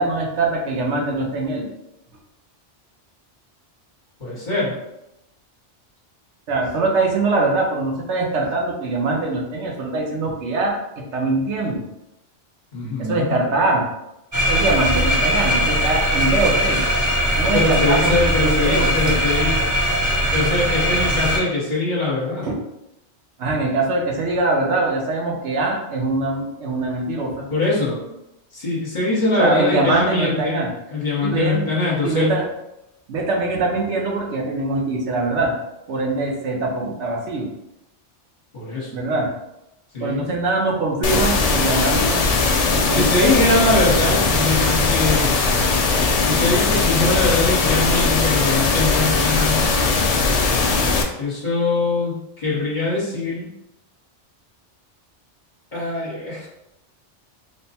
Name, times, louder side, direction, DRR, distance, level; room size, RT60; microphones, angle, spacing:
voice 1, 0.0-1.7 6.5-11.8 13.0-13.9 14.5-16.8 17.4-19.2 22.4-22.6 23.4-27.4 29.4-30.7 31.2-31.7 32.0-32.5 33.1-35.5 35.9-37.5 38.9-39.3 40.0-43.4, right 2 dB, 75° right, 0 dB, 1.0 m, -23 dB
voice 2, 4.2-4.7 12.7-13.3 17.5-19.6 20.3-22.5 27.5-28.0 28.5-30.6 30.9-32.3 38.5-39.0 39.9-40.3 42.9-45.4 46.2-49.7 51.2-53.5 55.7-56.5, left 2 dB, 40° left, -6 dB, 1.1 m, -22 dB
sound 1, 14.3-21.4, equal, 20° right, 0.5 m, -20 dB
sound 2, 41.0-51.0, left 3 dB, 70° left, 0.3 m, -19 dB
3.3 x 2.1 x 4.1 m, 0.88 s
omnidirectional pair, 1.2 m